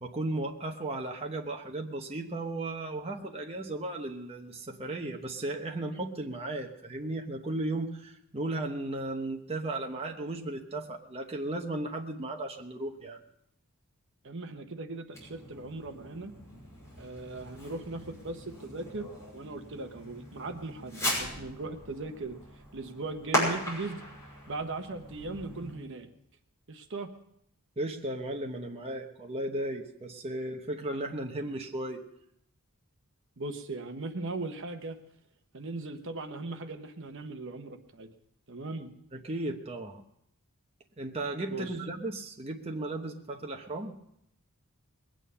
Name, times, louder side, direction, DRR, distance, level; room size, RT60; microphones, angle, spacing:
voice 1, 0.0-13.2 27.8-32.0 39.1-40.0 41.0-43.9, right 2 dB, 25° right, 2 dB, 1.0 m, -35 dB
voice 2, 14.2-16.3 17.0-22.4 22.7-24.0 24.5-26.1 26.7-27.1 33.4-35.0 35.5-38.1 38.5-38.9 41.5-41.7, right 3 dB, 55° right, 7 dB, 1.0 m, -38 dB
Fireworks, 15.1-25.8, equal, 15° left, 5.9 m, -38 dB
21.0 x 9.0 x 5.6 m, 0.75 s
head